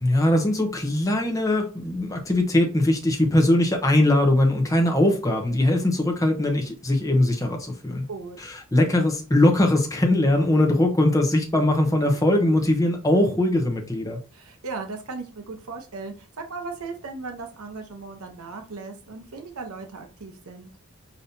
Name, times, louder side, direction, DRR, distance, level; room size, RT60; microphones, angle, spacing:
voice 1, 0.0-8.1 8.4-14.2, left 1 dB, 15° left, 0.7 m, -21 dB
voice 2, 14.3-20.7, right 4 dB, 80° right, 0.8 m, -37 dB
5.3 x 2.8 x 2.7 m
head